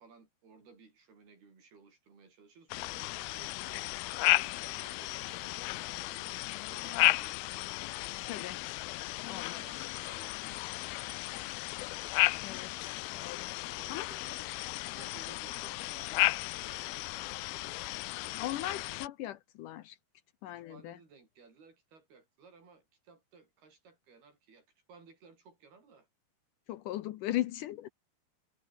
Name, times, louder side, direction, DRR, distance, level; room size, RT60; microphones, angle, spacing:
voice 1, 0.0-7.7 8.3-8.7 9.5-11.6 13.7-14.6 14.9-17.8 20.6-26.1, right 5 dB, 85° right, 8.4 m, -58 dB
sound 1, 2.7-19.1, left 20 dB, 85° left, 2.5 m, -34 dB
voice 2, 8.3-8.6 9.3-9.6 12.4-12.7 13.1-13.6 13.9-14.1 18.4-20.0 20.4-21.0 26.7-27.9, left 14 dB, 70° left, 2.1 m, -38 dB
omnidirectional pair, 4.3 m